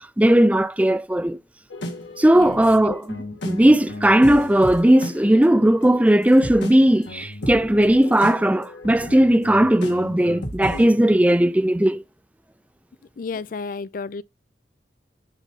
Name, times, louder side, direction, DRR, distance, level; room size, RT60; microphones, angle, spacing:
voice 1, 0.2-1.4 2.2-3.2 3.4-12.0, right 1 dB, 10° right, 0.4 m, -17 dB
sound 1, 1.7-10.9, left 1 dB, 75° left, 1.8 m, -35 dB
voice 2, 2.3-3.0 13.2-14.2, left 4 dB, 50° left, 0.4 m, -32 dB
10.5 x 4.0 x 4.0 m
head